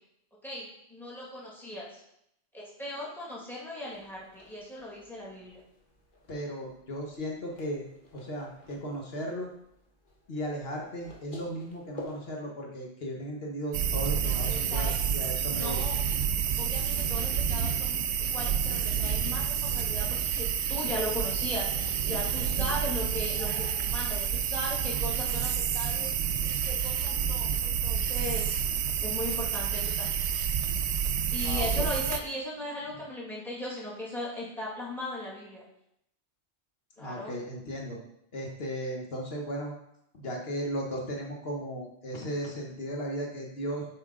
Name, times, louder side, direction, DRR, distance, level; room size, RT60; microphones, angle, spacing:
voice 1, 0.4-2.0 2.5-5.6 14.2-15.0 15.5-16.0 16.6-26.1 26.4-28.6 29.0-30.2 31.3-35.6 37.0-37.3, left 1 dB, ahead, -5 dB, 2.0 m, -38 dB
sound 1, 3.9-12.3, left 1 dB, 50° left, 1.4 m, -51 dB
voice 2, 6.3-7.9 8.1-9.5 10.3-15.8 31.4-31.9 37.0-38.0 38.3-39.7 40.2-43.9, equal, 70° left, -1 dB, 1.3 m, -36 dB
sound 2, 13.7-32.2, right 8 dB, 85° right, 0.8 m, -29 dB
7.2 x 5.1 x 3.7 m, 0.77 s
omnidirectional pair, 1.1 m